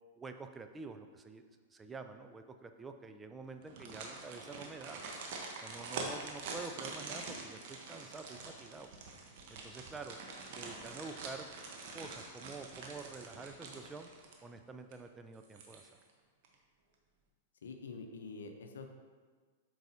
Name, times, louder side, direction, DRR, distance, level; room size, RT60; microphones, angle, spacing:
voice 1, 0.2-5.0 5.6-8.9 9.5-10.2 10.6-11.5 11.9-14.1 14.4-16.0, right 4 dB, 15° right, 7 dB, 0.4 m, -48 dB
sound 1, 3.6-14.6 14.9-15.0 15.4-16.1 16.4-16.5, right 3 dB, 55° right, 1.0 m, -45 dB
voice 2, 17.6-18.9, left 4 dB, 75° left, 6 dB, 0.6 m, -46 dB
7.7 x 4.7 x 2.7 m, 1.5 s
hypercardioid pair, 110°, 0 cm